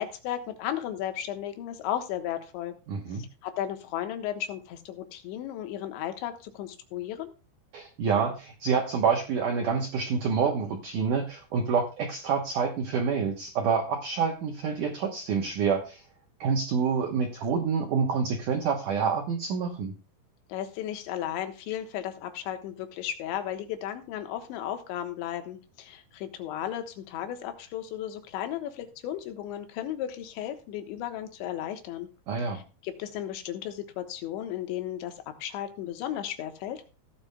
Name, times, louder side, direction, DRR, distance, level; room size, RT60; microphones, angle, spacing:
voice 1, 0.0-2.8 3.4-7.3 20.5-32.1 32.5-35.1 35.4-36.8, left 11 dB, 80° left, 6 dB, 3.5 m, -34 dB
voice 2, 2.9-3.3 7.7-16.0 16.4-19.9 32.3-32.6, right 6 dB, 85° right, 3 dB, 1.8 m, -27 dB
16.0 x 10.0 x 2.3 m, 0.32 s
omnidirectional pair, 5.3 m